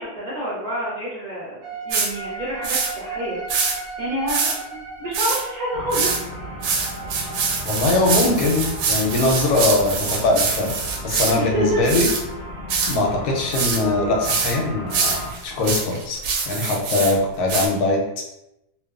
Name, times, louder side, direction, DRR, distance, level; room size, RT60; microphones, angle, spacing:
voice 1, 0.0-3.7 4.0-6.1 11.4-11.8, right 1 dB, 50° right, -8 dB, 0.5 m, -28 dB
sound 1, 1.6-9.3, right 3 dB, 70° right, 0.9 m, -37 dB
sound 2, 1.9-2.1 2.6-2.9 3.5-3.8 4.3-4.6 5.1-5.4 5.9-6.2 6.6-11.3 11.9-12.2 12.7-13.0 13.5-13.8 14.2-14.5 14.9-17.1 17.5-17.7, right 5 dB, 90° right, 1.2 m, -24 dB
sound 3, 5.7-15.3, equal, 50° left, 0.7 m, -35 dB
voice 2, 7.6-10.7 11.0-12.1 12.9-16.2 16.5-18.2, left 2 dB, 75° left, 0 dB, 1.1 m, -21 dB
2.8 x 2.2 x 2.3 m, 0.87 s
omnidirectional pair, 1.8 m